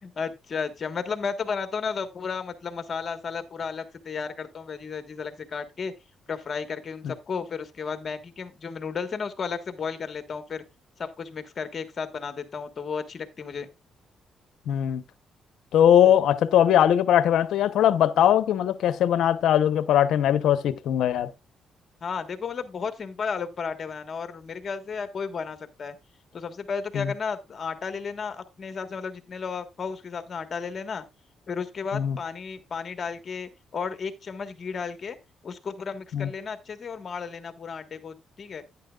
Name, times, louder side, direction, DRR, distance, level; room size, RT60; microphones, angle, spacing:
voice 1, 0.0-5.9 6.3-10.6 11.0-13.7 22.0-25.9 26.3-31.0 31.5-35.2 35.4-38.6, left 5 dB, 45° left, 1.4 m, -33 dB
voice 2, 14.7-15.0 15.7-21.3 26.9-27.1 31.9-32.2 36.1-36.3, left 10 dB, 80° left, 0.8 m, -20 dB
10.5 x 9.9 x 2.4 m
cardioid pair, 90°, 0 cm